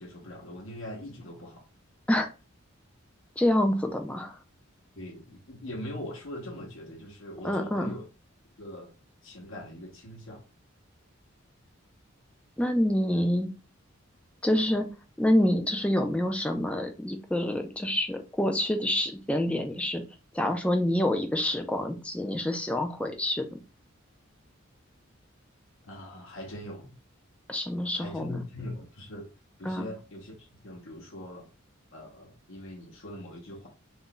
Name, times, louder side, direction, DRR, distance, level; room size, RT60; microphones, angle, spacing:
voice 1, 0.0-1.6 5.0-8.1 8.6-8.9 9.2-10.4 13.1-13.2 25.8-26.9 28.0-29.3 29.6-31.5 31.9-33.7, left 1 dB, 65° left, 0.8 m, -41 dB
voice 2, 3.4-4.4 7.4-7.9 12.6-13.5 14.4-14.9 15.2-20.0 20.3-23.4 27.5-28.4 29.7-29.9, left 1 dB, 5° left, 0.3 m, -27 dB
2.5 x 2.2 x 3.7 m
head